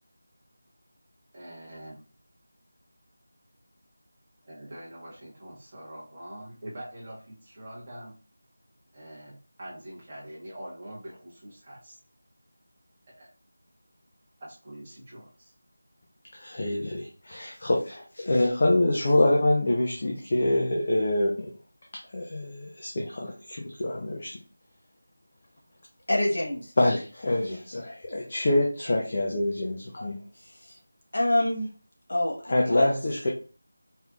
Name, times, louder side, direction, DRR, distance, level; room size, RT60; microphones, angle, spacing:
voice 1, 1.3-2.0 4.4-8.1 8.9-12.0 13.1-13.3 14.4-15.5, right 1 dB, 20° right, -7 dB, 1.3 m, -44 dB
voice 2, 16.3-21.5 22.1-24.4 26.8-30.2 32.5-33.3, left 1 dB, 25° left, 0 dB, 0.5 m, -26 dB
voice 3, 26.1-26.7 30.4-30.8 31.1-31.7 32.1-32.9, left 1 dB, 50° left, -2 dB, 1.3 m, -27 dB
4.8 x 3.2 x 2.5 m, 0.37 s
figure-of-eight pair, 180°, 0 cm